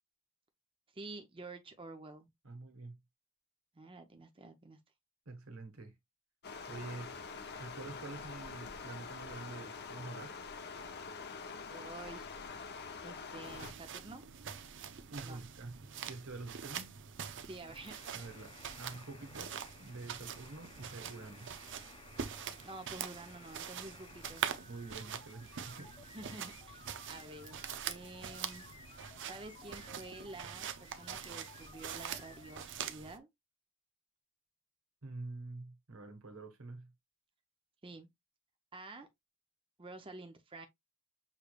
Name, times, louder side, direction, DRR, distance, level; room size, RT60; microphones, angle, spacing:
voice 1, 0.9-2.3 3.7-4.8 11.7-12.3 13.0-14.2 15.2-15.4 17.5-17.9 22.6-24.5 26.1-28.7 29.3-33.3 37.8-38.1 38.7-39.1 39.8-40.7, right 2 dB, 25° right, 0.7 m, -49 dB
voice 2, 2.4-3.0 5.2-5.9 6.7-7.2 7.5-10.3 15.1-17.0 18.1-21.5 24.7-26.0 35.0-36.9, right 3 dB, 75° right, 1.4 m, -47 dB
Stream, 6.4-13.7, left 5 dB, 50° left, 0.8 m, -45 dB
sound 1, 13.4-33.2, right 8 dB, 60° right, 0.6 m, -44 dB
sound 2, 17.7-32.7, left 5 dB, 25° left, 0.4 m, -58 dB
6.6 x 3.2 x 2.4 m
head